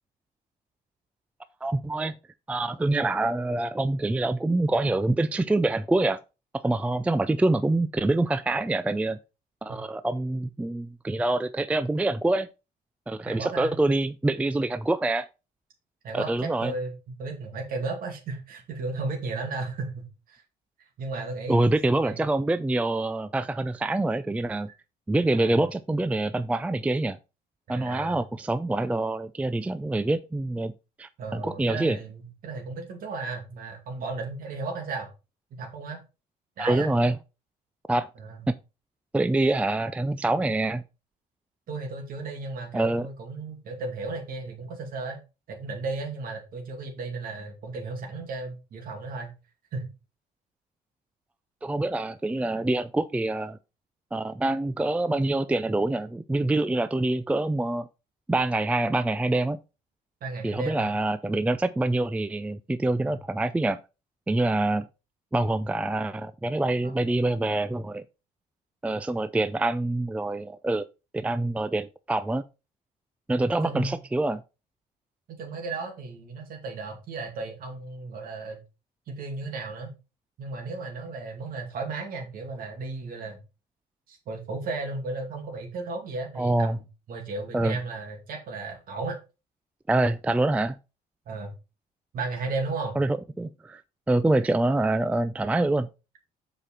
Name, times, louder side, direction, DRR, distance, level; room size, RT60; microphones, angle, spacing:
voice 1, 1.6-2.1 2.5-6.2 6.6-9.2 9.6-12.5 13.1-15.3 16.1-16.7 21.5-24.7 25.1-27.2 27.7-30.7 31.0-32.0 36.6-37.1 37.9-38.1 38.5-38.6 39.1-40.8 42.7-43.1 51.6-53.6 54.1-57.9 58.3-59.6 60.4-63.8 64.3-64.9 65.3-68.0 68.8-70.9 71.1-72.4 73.3-74.4 86.4-86.8 87.5-87.8 89.9-90.8 93.0-93.8 94.1-95.9, right 2 dB, 10° right, 0.4 m, -25 dB
voice 2, 13.3-13.8 16.0-20.4 20.8-21.6 21.9-22.2 25.3-25.6 27.7-28.2 31.2-35.1 35.6-36.0 36.6-36.9 38.2-38.4 40.5-40.6 41.7-45.2 45.5-49.3 49.7-49.9 60.2-60.9 63.1-63.2 66.8-67.1 73.5-74.0 75.3-78.6 79.1-79.9 80.4-83.4 84.1-89.2 91.3-91.5 92.1-93.0, right 3 dB, 60° right, 2.4 m, -35 dB
7.5 x 5.0 x 4.3 m
cardioid pair, 110°, 17 cm